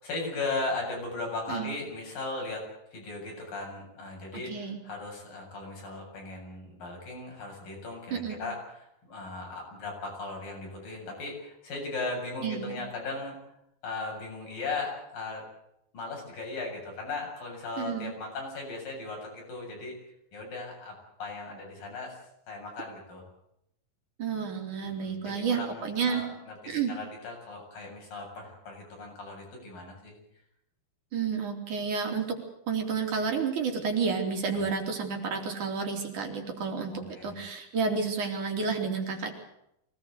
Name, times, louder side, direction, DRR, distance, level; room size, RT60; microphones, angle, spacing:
voice 1, 0.0-2.6 2.9-13.4 13.8-15.5 15.9-20.0 20.3-20.9 21.2-22.2 22.5-23.3 24.8-30.2 34.5-34.6 36.9-37.4, left 3 dB, 65° left, 0 dB, 9.2 m, -37 dB
voice 2, 4.3-4.8 8.1-8.4 12.4-12.8 17.8-18.1 24.2-26.2 26.7-26.9 31.1-32.3 32.7-39.3, right 5 dB, 55° right, 3 dB, 4.5 m, -30 dB
24.0 x 19.0 x 8.1 m, 0.79 s
omnidirectional pair, 4.2 m